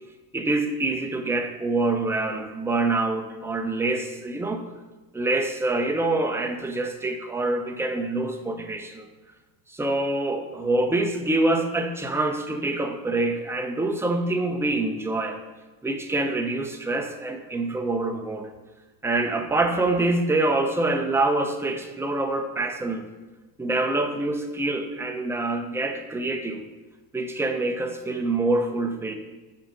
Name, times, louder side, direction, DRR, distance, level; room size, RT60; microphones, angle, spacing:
voice 1, 0.3-4.6 5.1-9.1 9.7-15.4 15.8-18.5 19.0-23.1 23.6-26.6 27.1-29.1, right 2 dB, 5° right, 4 dB, 0.8 m, -25 dB
6.7 x 5.1 x 6.7 m, 1.2 s
supercardioid pair, 115°, 45 cm